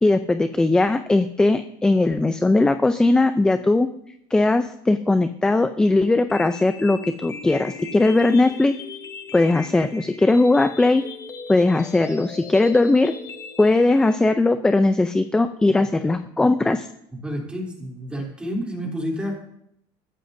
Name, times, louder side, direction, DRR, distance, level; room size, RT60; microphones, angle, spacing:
voice 1, 0.0-3.9 4.3-8.7 9.3-11.0 11.5-13.1 13.6-16.9, left 2 dB, 5° left, 9 dB, 0.4 m, -19 dB
sound 1, 6.3-14.3, left 4 dB, 25° left, 0.9 m, -38 dB
voice 2, 17.2-19.3, equal, 10° right, -1 dB, 3.3 m, -29 dB
22.0 x 14.5 x 2.7 m, 0.76 s
cardioid pair, 155°, 11 cm